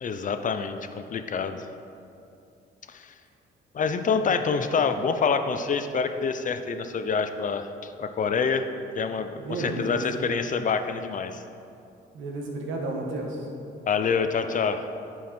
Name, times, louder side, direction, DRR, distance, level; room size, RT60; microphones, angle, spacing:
voice 1, 0.0-1.7 2.9-3.1 3.7-8.7 9.0-11.4 13.9-14.8, left 5 dB, 40° left, 8 dB, 0.6 m, -27 dB
voice 2, 9.4-10.2 12.1-13.5, right 2 dB, 75° right, 0 dB, 1.4 m, -32 dB
10.5 x 4.7 x 4.3 m, 2.6 s
cardioid pair, 90°, 20 cm